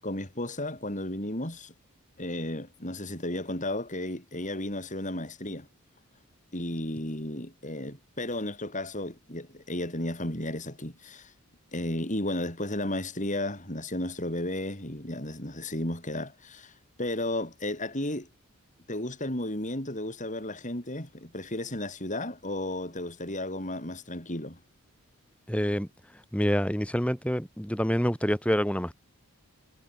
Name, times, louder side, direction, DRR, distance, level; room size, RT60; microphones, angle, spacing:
voice 1, 0.0-1.7 2.2-5.7 6.5-11.3 11.7-16.7 17.0-18.3 18.9-24.6, left 1 dB, 35° left, 7.6 m, -33 dB
voice 2, 25.5-25.9 26.3-28.9, equal, 5° left, 3.0 m, -27 dB
head